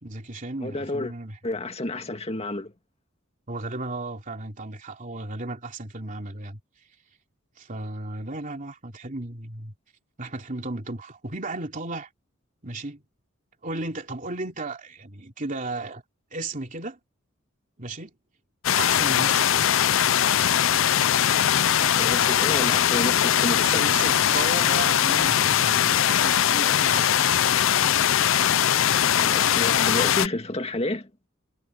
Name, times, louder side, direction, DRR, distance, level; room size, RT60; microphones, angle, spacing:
voice 1, 0.0-1.4 3.5-6.6 7.6-9.7 10.2-12.1 12.6-13.0 13.6-16.0 16.3-17.0 17.8-18.1 18.7-19.7 23.5-27.1, right 2 dB, 40° right, 3.1 m, -34 dB
voice 2, 0.6-1.1 1.4-2.7 21.8-23.9 29.2-31.1, left 1 dB, 30° left, 2.1 m, -30 dB
sound 1, 18.6-30.3, left 10 dB, 70° left, 0.5 m, -21 dB
head